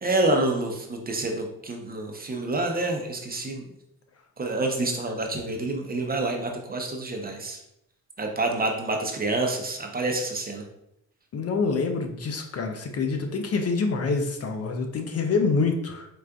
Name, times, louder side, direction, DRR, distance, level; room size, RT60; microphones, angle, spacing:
voice 1, 0.0-3.7 4.4-7.6 8.2-10.6, right 2 dB, 25° right, 2 dB, 0.7 m, -27 dB
voice 2, 11.3-16.1, left 4 dB, 45° left, 5 dB, 0.5 m, -26 dB
4.6 x 2.4 x 2.3 m, 0.79 s
cardioid pair, 75°, 35 cm